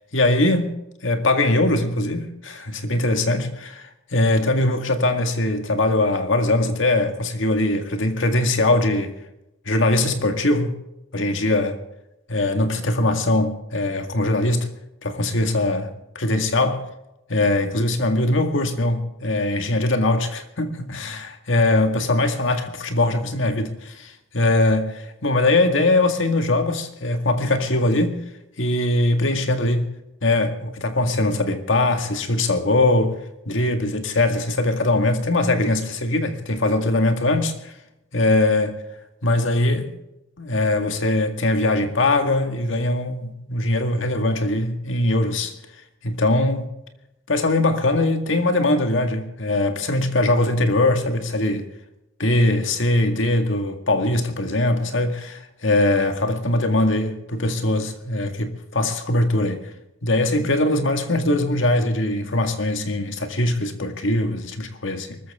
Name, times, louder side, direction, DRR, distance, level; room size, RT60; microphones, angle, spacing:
voice 1, 0.1-0.7 1.0-9.1 9.7-10.7 11.1-11.8 12.3-14.7 15.0-15.9 16.2-16.8 17.3-28.2 28.6-29.9 30.2-33.2 33.5-37.7 38.1-38.8 39.2-39.9 40.4-45.5 46.0-46.7 47.3-51.6 52.2-59.6 60.0-65.2, left 2 dB, 70° left, 2.0 m, -21 dB
23.5 x 14.0 x 3.7 m
head